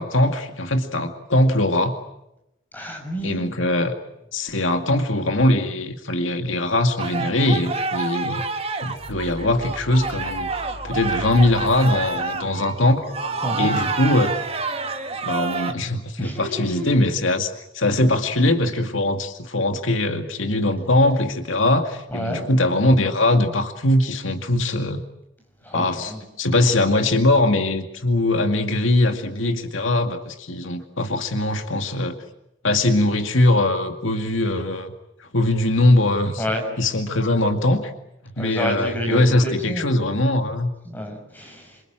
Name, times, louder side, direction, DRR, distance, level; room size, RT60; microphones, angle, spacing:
voice 1, 0.0-2.0 3.2-3.9 4.3-8.4 8.8-10.5 10.8-13.0 13.6-14.4 15.2-25.0 25.7-32.2 32.6-34.9 35.2-36.4 36.8-37.9 38.2-40.7, left 1 dB, 75° left, 6 dB, 2.2 m, -21 dB
voice 2, 2.7-3.4 13.4-13.7 16.2-16.9 22.1-22.5 25.6-26.2 36.4-36.7 38.4-39.9 40.8-41.8, equal, 10° left, 2 dB, 6.6 m, -29 dB
sound 1, 7.0-15.7, right 3 dB, 30° right, 1.7 m, -28 dB
sound 2, 8.8-15.4, equal, 50° left, 7.9 m, -41 dB
27.5 x 26.0 x 7.6 m, 0.86 s
head